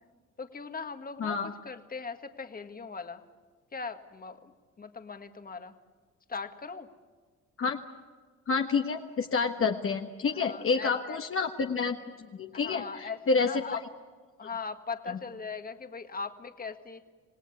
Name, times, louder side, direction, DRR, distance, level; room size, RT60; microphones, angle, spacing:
voice 1, 0.4-1.4 1.7-3.2 3.7-5.8 6.3-6.9 10.3-11.2 12.5-13.8 14.4-17.0, left 5 dB, 30° left, 8 dB, 1.8 m, -39 dB
voice 2, 1.2-1.5 7.6-7.8 8.5-13.8 15.1-15.2, left 4 dB, 45° left, 3 dB, 1.5 m, -29 dB
27.0 x 18.0 x 8.5 m, 1.5 s
cardioid pair, 90°, 30 cm